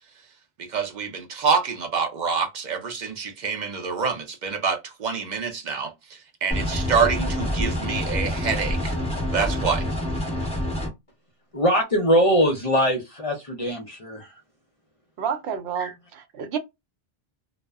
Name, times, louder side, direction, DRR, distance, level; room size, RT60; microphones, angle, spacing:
voice 1, 0.6-8.9 9.3-9.8, right 5 dB, 55° right, 0.6 m, -26 dB
sound 1, 6.5-10.9, equal, 5° left, 0.7 m, -27 dB
voice 2, 11.5-14.3 15.8-15.9, equal, 40° left, 0.5 m, -22 dB
voice 3, 15.2-16.6, right 7 dB, 85° right, 0.8 m, -29 dB
2.0 x 2.0 x 3.4 m
omnidirectional pair, 1.1 m